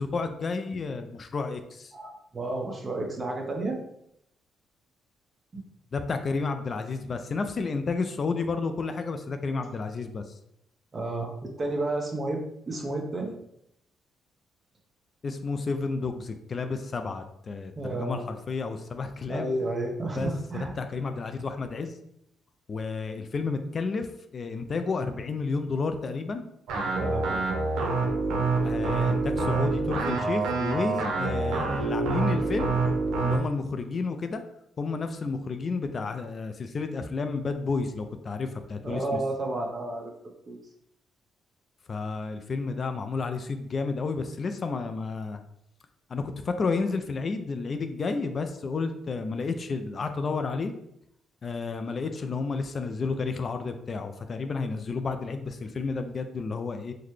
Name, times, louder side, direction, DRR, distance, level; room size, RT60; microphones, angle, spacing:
voice 1, 0.0-1.9 5.9-10.3 15.2-19.5 20.1-22.0 22.7-24.1 24.3-26.4 28.6-32.8 33.2-34.4 34.8-39.0 41.9-45.4 46.1-50.7 51.4-56.9, left 4 dB, 40° left, 7 dB, 0.3 m, -31 dB
voice 2, 1.9-3.8 5.5-5.6 10.9-13.3 17.8-18.3 19.3-20.7 27.0-27.4 38.8-40.1 40.5-40.6, right 2 dB, 35° right, 2 dB, 0.8 m, -31 dB
sound 1, 26.7-33.4, right 3 dB, 85° right, 0.7 m, -26 dB
3.9 x 2.1 x 3.1 m, 0.75 s
cardioid pair, 90°, 0 cm